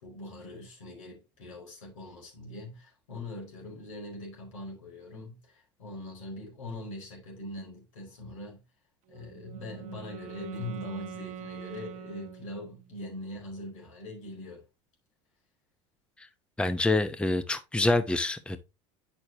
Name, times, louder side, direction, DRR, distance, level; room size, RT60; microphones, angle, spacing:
voice 1, 0.0-8.6 9.1-14.6, left 1 dB, 90° left, 4.8 m, -42 dB
Wind instrument woodwind instrument, 9.1-13.0, right 8 dB, 50° right, 1.0 m, -44 dB
voice 2, 16.6-18.6, left 2 dB, 5° left, 0.7 m, -26 dB
9.1 x 6.4 x 2.9 m
hypercardioid pair, 85°, 16 cm